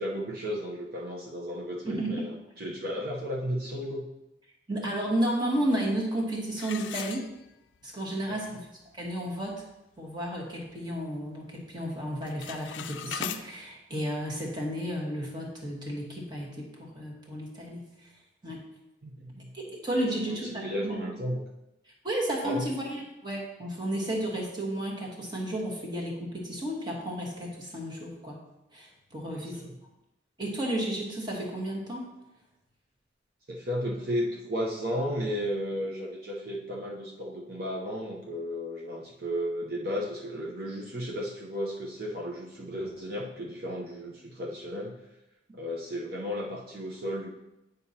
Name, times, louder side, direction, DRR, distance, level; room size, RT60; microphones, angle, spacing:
voice 1, 0.0-4.0 8.3-8.5 19.0-19.5 20.3-21.4 22.4-22.7 29.3-29.7 33.5-45.0 45.5-47.3, equal, 55° right, -3 dB, 0.8 m, -34 dB
voice 2, 1.8-2.2 4.7-7.3 7.8-8.7 8.9-9.6 10.0-18.1 18.4-18.6 19.5-21.0 22.0-28.4 28.7-29.6 30.4-32.1, right 1 dB, 25° right, -3 dB, 1.4 m, -32 dB
sound 1, 6.6-7.8 8.3-8.4 8.9-9.0 9.4-9.7 10.2-11.3 11.6-11.9 12.2-13.4, left 9 dB, 80° left, 0.4 m, -39 dB
8.9 x 5.3 x 2.8 m, 0.93 s
head